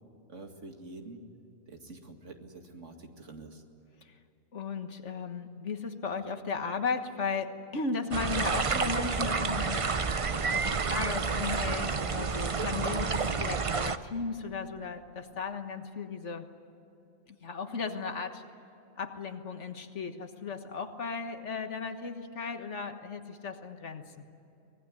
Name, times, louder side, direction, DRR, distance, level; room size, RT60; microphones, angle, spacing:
voice 1, 0.3-1.2 1.7-3.6, right 2 dB, 65° right, 4 dB, 2.5 m, -47 dB
voice 2, 4.5-9.9 10.5-16.5 17.4-18.4 19.0-24.2, left 4 dB, 65° left, 7 dB, 1.7 m, -36 dB
sound 1, 8.1-14.0, right 5 dB, 35° right, 0.6 m, -29 dB
24.5 x 20.0 x 9.7 m, 2.7 s
omnidirectional pair, 1.3 m